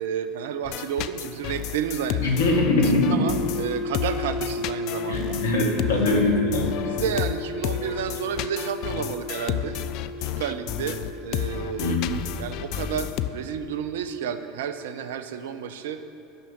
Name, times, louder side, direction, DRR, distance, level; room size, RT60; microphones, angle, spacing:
voice 1, 0.0-2.4 2.8-5.4 6.8-9.8 10.2-12.0 12.4-16.0, right 8 dB, 65° right, 10 dB, 0.7 m, -31 dB
sound 1, 0.6-13.3, left 12 dB, 55° left, 0.4 m, -31 dB
voice 2, 2.2-3.2 5.1-6.8 11.8-12.2, left 2 dB, 75° left, 0 dB, 2.0 m, -22 dB
sound 2, 3.2-13.9, left 2 dB, 30° left, 1.1 m, -35 dB
9.2 x 6.9 x 8.9 m, 3.0 s
figure-of-eight pair, 80°, 0 cm